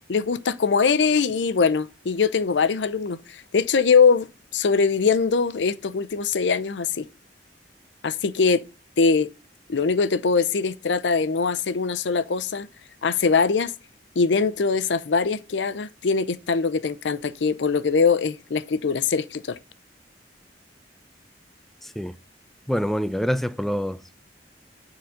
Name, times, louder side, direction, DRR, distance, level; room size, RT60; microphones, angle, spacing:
voice 1, 0.1-4.3 4.5-7.1 8.0-8.6 9.0-9.3 9.7-12.7 13.0-13.7 14.2-19.6, left 5 dB, 80° left, 0.6 m, -22 dB
voice 2, 22.7-24.2, equal, ahead, 0.3 m, -26 dB
7.0 x 3.9 x 6.2 m
head